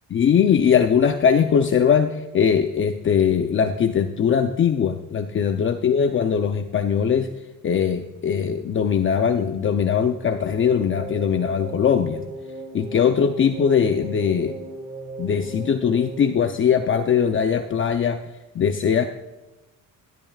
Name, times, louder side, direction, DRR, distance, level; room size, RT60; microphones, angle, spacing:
voice 1, 0.1-7.3 7.6-12.2 12.7-14.6 15.2-18.2 18.5-19.1, left 7 dB, 40° left, 6 dB, 0.6 m, -20 dB
sound 1, 10.2-17.4, right 2 dB, 5° right, 1.8 m, -37 dB
18.0 x 12.0 x 2.4 m, 1.1 s
cardioid pair, 135°, 33 cm